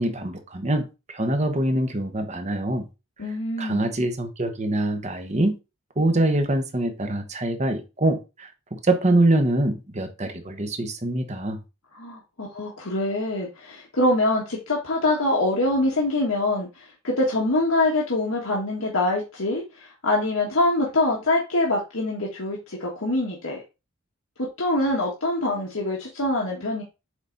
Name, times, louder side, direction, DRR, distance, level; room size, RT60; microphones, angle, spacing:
voice 1, 0.0-2.9 3.6-5.6 6.0-11.6, right 1 dB, 35° right, 1.1 m, -24 dB
voice 2, 3.2-3.8 11.9-23.6 24.4-26.8, left 2 dB, 80° left, 1.7 m, -24 dB
7.9 x 4.1 x 3.9 m
head